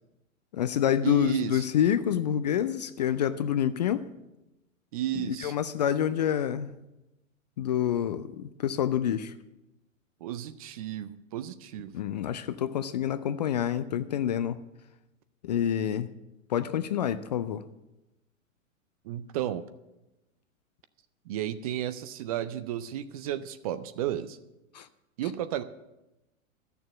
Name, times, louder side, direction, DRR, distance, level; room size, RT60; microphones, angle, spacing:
voice 1, 0.5-4.1 5.1-6.7 7.6-9.3 11.9-14.6 15.4-16.1 16.5-17.6 24.7-24.9, left 10 dB, 35° left, 13 dB, 0.4 m, -27 dB
voice 2, 1.0-1.7 4.9-5.6 10.2-11.9 19.0-19.6 21.3-24.4 25.2-25.6, right 11 dB, 30° right, 13 dB, 0.4 m, -33 dB
13.5 x 6.8 x 7.9 m, 0.96 s
figure-of-eight pair, 100°, 41 cm